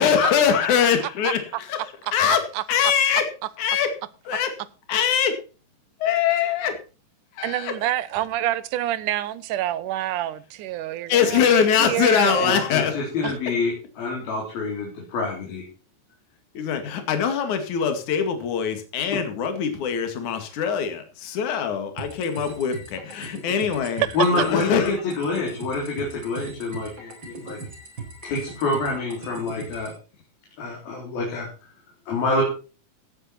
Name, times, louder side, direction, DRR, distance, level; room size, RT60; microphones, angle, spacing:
voice 1, 0.0-1.8 2.1-3.3 3.6-3.9 4.2-4.5 4.9-5.4 6.0-6.8 7.3-7.7 11.1-13.0 16.5-24.0 24.3-25.0, left 8 dB, 60° left, 3.5 m, -22 dB
voice 2, 2.3-2.6 7.4-12.6 13.2-13.3 24.0-24.2, right 13 dB, 70° right, 2.3 m, -27 dB
voice 3, 12.4-15.7 24.2-27.6 28.2-29.9 30.6-31.5 32.1-32.4, left 3 dB, 85° left, 5.6 m, -27 dB
sound 1, 22.0-30.0, right 3 dB, 30° right, 4.8 m, -39 dB
17.5 x 9.7 x 4.4 m
omnidirectional pair, 4.1 m